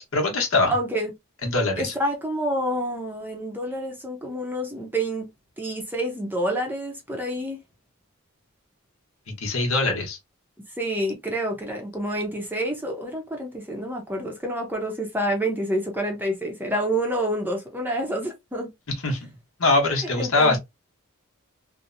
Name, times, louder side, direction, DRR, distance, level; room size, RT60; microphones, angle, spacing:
voice 1, 0.1-0.7 1.4-1.9 9.3-10.2 19.0-19.3 19.6-20.6, left 3 dB, 70° left, 1.0 m, -22 dB
voice 2, 0.7-1.1 1.8-5.3 5.6-7.6 10.8-18.7 20.2-20.6, right 1 dB, 10° right, 0.7 m, -28 dB
2.8 x 2.1 x 2.5 m
head